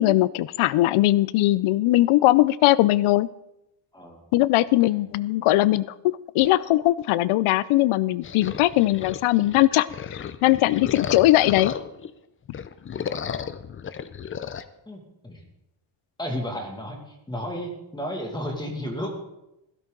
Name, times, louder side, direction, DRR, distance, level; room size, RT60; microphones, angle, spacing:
voice 1, 0.0-3.3 4.3-11.7, left 16 dB, 80° left, 18 dB, 0.6 m, -20 dB
voice 2, 3.9-4.2 4.6-5.0 14.9-15.4 16.2-19.1, equal, 10° left, 1 dB, 2.1 m, -33 dB
sound 1, 8.2-12.1 12.5-14.7, left 7 dB, 30° left, 0.4 m, -34 dB
16.5 x 12.5 x 3.8 m, 0.90 s
cardioid pair, 160°, 48 cm